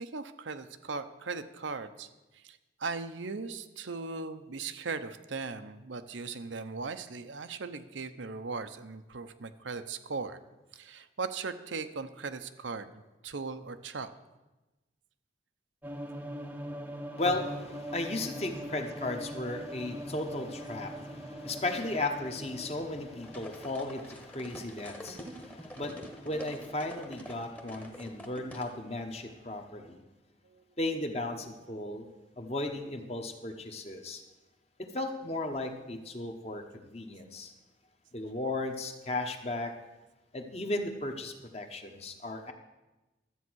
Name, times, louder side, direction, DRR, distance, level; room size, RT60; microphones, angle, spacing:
voice 1, 0.0-10.4 10.7-14.1 30.4-30.6, right 4 dB, 75° right, 9 dB, 0.8 m, -38 dB
sound 1, 15.8-24.0, equal, 10° right, 0.7 m, -42 dB
voice 2, 17.2-30.0 30.8-32.1 32.4-34.2 34.8-37.5 38.1-39.7 40.3-42.5, left 2 dB, 30° left, 4 dB, 1.1 m, -35 dB
sound 2, 23.2-28.7, equal, 5° left, 1.1 m, -46 dB
12.5 x 8.4 x 6.3 m, 1.1 s
head